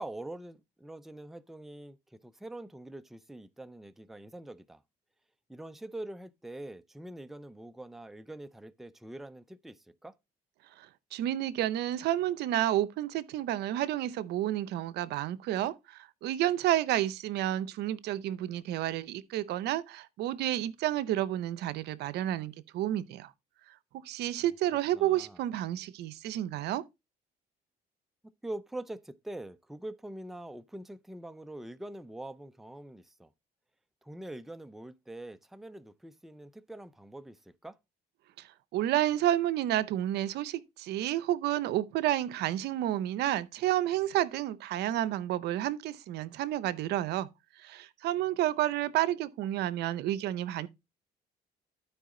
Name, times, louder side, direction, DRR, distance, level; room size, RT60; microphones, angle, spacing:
voice 1, 0.0-4.8 5.5-10.1 24.9-25.4 28.4-33.3 34.0-37.8, right 1 dB, ahead, 0.5 m, -44 dB
voice 2, 10.8-23.3 23.9-26.8 38.4-47.3 47.6-50.7, right 13 dB, 80° right, 0.7 m, -30 dB
12.5 x 4.8 x 3.8 m
cardioid pair, 110°, 17 cm